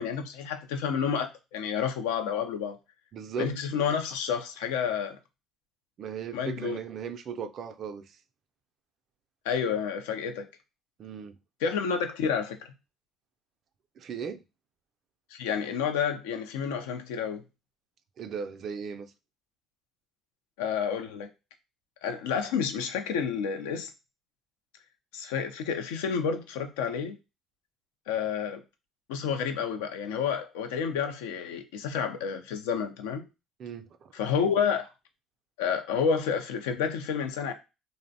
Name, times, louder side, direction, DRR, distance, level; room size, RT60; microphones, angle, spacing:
voice 1, 0.0-2.8 3.4-5.2 6.3-6.8 9.4-10.5 11.6-12.7 15.3-17.4 20.6-21.3 22.0-23.9 25.1-27.2 28.1-28.6 29.1-33.2 34.1-34.9 35.6-37.5, left 7 dB, 85° left, 0.4 m, -30 dB
voice 2, 3.1-3.5 6.0-8.2 11.0-11.4 14.0-14.4 18.2-19.1 33.6-34.1, right 6 dB, 55° right, 0.3 m, -37 dB
2.5 x 2.0 x 2.6 m
hypercardioid pair, 65°, 0 cm